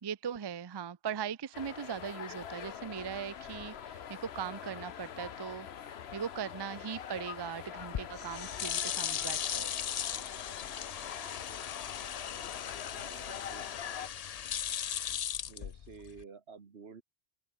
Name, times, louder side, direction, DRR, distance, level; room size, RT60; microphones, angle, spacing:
voice 1, 0.0-9.7, right 8 dB, 35° right, 0.4 m, -40 dB
sound 1, 1.5-14.1, left 8 dB, 90° left, 1.2 m, -44 dB
sound 2, 7.8-16.2, left 9 dB, 50° left, 0.5 m, -37 dB
voice 2, 12.9-13.7 15.4-17.0, right 5 dB, 85° right, 1.8 m, -51 dB
open air
omnidirectional pair, 1.0 m